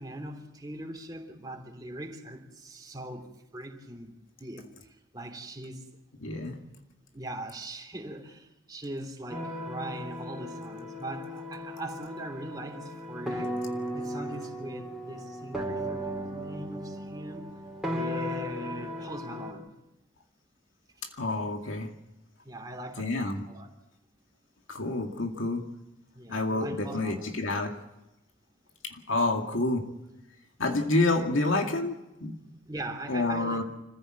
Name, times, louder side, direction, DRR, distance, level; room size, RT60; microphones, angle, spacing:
voice 1, 0.0-5.9 7.1-13.5 13.9-17.6 17.8-19.7 22.4-23.7 26.1-27.4 32.6-33.6, right 1 dB, 20° right, 2 dB, 3.1 m, -41 dB
voice 2, 6.2-6.6 21.2-21.9 23.0-23.4 24.7-25.7 26.3-27.7 28.8-29.9 30.6-32.4 33.1-33.6, left 2 dB, 85° left, 3 dB, 2.2 m, -28 dB
sound 1, 9.3-19.5, equal, 5° right, 4.2 m, -36 dB
26.0 x 15.5 x 7.7 m, 0.95 s
head